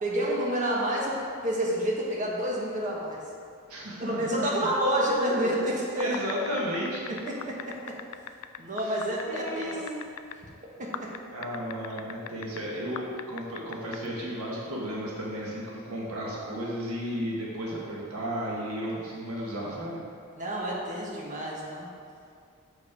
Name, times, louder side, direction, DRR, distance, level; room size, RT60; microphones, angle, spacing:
voice 1, 0.0-3.2 4.0-6.1 7.1-8.0 8.6-9.8 10.8-11.1 20.4-21.9, equal, 35° right, -3 dB, 1.3 m, -29 dB
voice 2, 3.7-4.6 6.0-7.0 8.8-9.0 9.3-10.0 11.3-20.0, equal, 90° right, -4 dB, 1.4 m, -33 dB
sound 1, 5.9-10.4 10.9-12.6 13.0-14.0, left 10 dB, 85° left, 0.3 m, -38 dB
6.3 x 5.2 x 4.9 m, 2.3 s
head